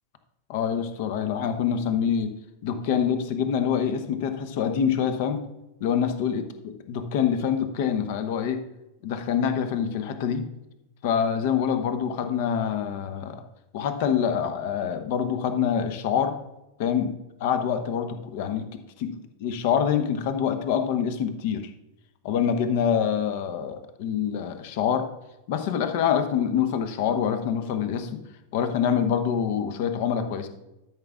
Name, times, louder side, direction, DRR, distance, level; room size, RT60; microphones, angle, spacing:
voice 1, 0.5-2.3 2.6-5.4 5.8-8.6 9.0-10.4 11.0-13.4 13.7-16.3 16.8-17.1 17.4-21.6 22.2-25.1 25.5-28.2 28.5-30.5, left 8 dB, 50° left, 8 dB, 1.0 m, -26 dB
12.5 x 6.0 x 3.6 m, 0.93 s
figure-of-eight pair, 90°, 0 cm